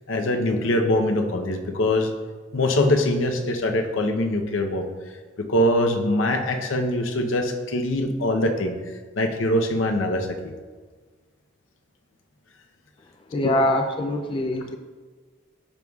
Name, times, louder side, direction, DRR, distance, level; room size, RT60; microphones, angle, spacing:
voice 1, 0.1-2.1 2.5-4.9 5.4-8.7 9.2-10.5, left 1 dB, 85° left, 4 dB, 0.7 m, -23 dB
voice 2, 13.3-14.8, left 1 dB, 25° left, 4 dB, 0.3 m, -24 dB
11.0 x 5.4 x 2.3 m, 1.4 s
head